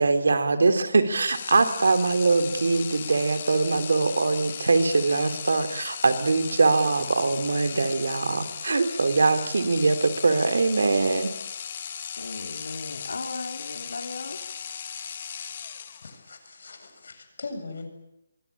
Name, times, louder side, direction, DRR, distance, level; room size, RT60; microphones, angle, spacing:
voice 1, 0.0-11.3, right 3 dB, 80° right, 9 dB, 3.4 m, -22 dB
sound 1, 1.2-16.3, left 7 dB, 40° left, 1.9 m, -37 dB
voice 2, 12.2-14.4, left 3 dB, 90° left, 4 dB, 4.4 m, -36 dB
voice 3, 16.0-17.9, left 3 dB, 65° left, 7 dB, 7.6 m, -40 dB
25.0 x 23.5 x 8.7 m, 0.84 s
hypercardioid pair, 170°, 0 cm